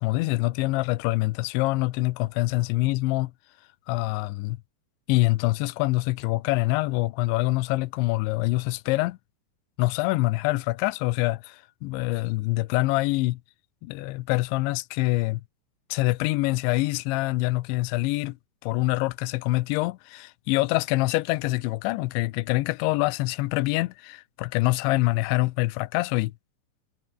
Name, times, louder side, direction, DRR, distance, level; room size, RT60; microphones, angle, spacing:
voice 1, 0.0-3.3 3.9-4.6 5.1-9.2 9.8-13.4 13.8-15.4 15.9-18.4 18.6-26.3, left 20 dB, 85° left, 2.7 m, -25 dB
omnidirectional pair, 5.9 m